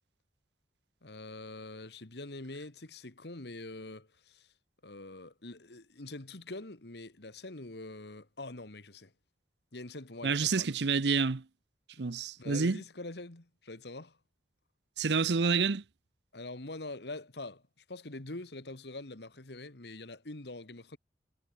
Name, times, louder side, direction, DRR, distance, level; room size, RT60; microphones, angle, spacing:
voice 1, 1.0-4.5 4.8-9.1 9.7-10.7 11.9-12.0 12.4-14.2 16.3-21.0, left 2 dB, 70° left, 2.0 m, -44 dB
voice 2, 10.2-11.4 12.0-12.8 15.0-15.8, right 5 dB, 75° right, 0.7 m, -28 dB
head